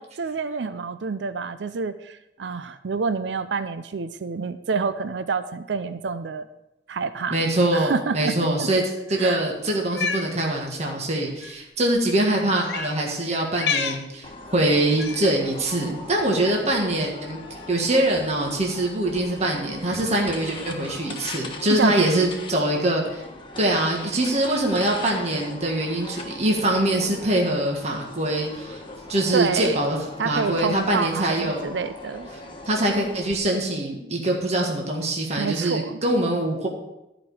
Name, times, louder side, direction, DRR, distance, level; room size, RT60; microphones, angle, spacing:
voice 1, 0.0-6.5 6.9-7.4 7.7-8.7 9.2-9.4 21.7-22.1 29.3-29.8 30.2-32.3 35.4-36.0, right 5 dB, 85° right, 12 dB, 0.5 m, -28 dB
voice 2, 7.3-17.4 17.7-23.2 23.6-28.8 29.1-30.0 30.2-31.6 32.6-36.7, right 1 dB, 40° right, 0 dB, 1.6 m, -23 dB
Cat, 9.8-10.3 11.3-11.5 12.6-12.9 13.5-14.0 15.0-15.3, left 6 dB, 75° left, 0.9 m, -28 dB
sound 1, 14.2-33.3, left 2 dB, 30° left, 1.3 m, -39 dB
13.5 x 5.2 x 6.2 m, 0.94 s
head